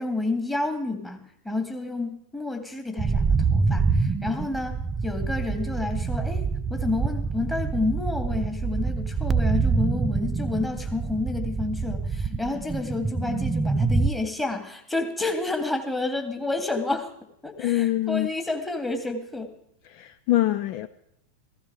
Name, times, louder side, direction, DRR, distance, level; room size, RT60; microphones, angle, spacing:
voice 1, 0.0-17.1 17.4-19.5, left 2 dB, 5° left, 2.1 m, -30 dB
sound 1, 3.0-14.1, right 4 dB, 20° right, 0.6 m, -26 dB
voice 2, 17.6-18.3 19.9-20.9, left 14 dB, 45° left, 0.5 m, -24 dB
15.5 x 15.0 x 4.8 m
figure-of-eight pair, 90°, 0 cm